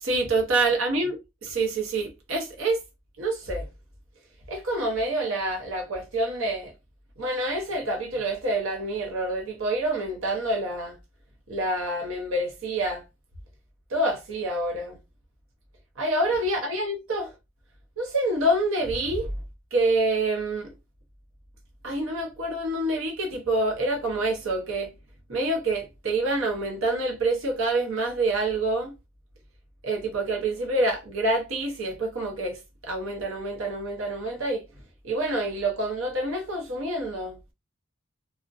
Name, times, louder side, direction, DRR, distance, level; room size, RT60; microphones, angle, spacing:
voice 1, 0.0-2.8 3.2-3.7 4.5-6.7 7.2-11.0 11.5-13.0 13.9-15.0 16.0-17.3 18.0-19.3 19.7-20.7 21.8-24.9 25.3-28.9 29.8-34.6 35.0-37.4, right 2 dB, 70° right, 0.7 m, -27 dB
2.4 x 2.1 x 2.5 m
head